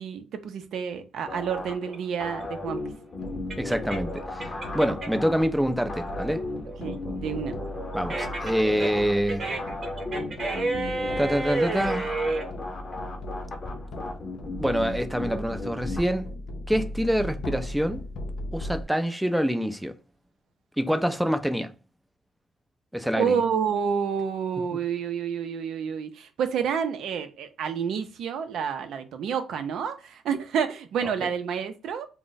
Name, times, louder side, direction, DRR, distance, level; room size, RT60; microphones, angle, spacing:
voice 1, 0.0-2.8 6.8-7.6 23.2-32.1, right 7 dB, 75° right, 0.4 m, -29 dB
sound 1, 1.3-16.0, left 2 dB, 35° left, 0.8 m, -36 dB
sound 2, 1.9-5.3 5.7-12.5, right 2 dB, 45° right, 0.9 m, -31 dB
sound 3, 3.2-18.8, left 1 dB, 70° left, 0.5 m, -38 dB
voice 2, 3.6-6.4 7.9-9.4 11.2-12.1 14.6-16.3 16.7-18.0 18.5-19.9 20.8-21.7 22.9-23.4 24.7-24.8, equal, 5° right, 0.4 m, -26 dB
2.5 x 2.0 x 3.8 m
cardioid pair, 90°, 0 cm